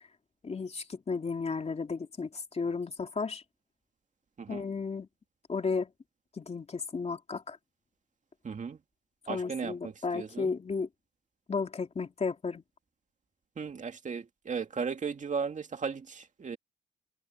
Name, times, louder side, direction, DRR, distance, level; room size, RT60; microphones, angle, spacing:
voice 1, 0.4-3.4 4.5-5.1 5.5-5.9 6.4-7.6 9.3-10.9 11.5-12.6, left 4 dB, 30° left, 3.2 m, -33 dB
voice 2, 8.4-8.8 9.3-10.5 13.6-16.6, right 5 dB, 40° right, 2.4 m, -36 dB
cardioid pair, 90°, 20 cm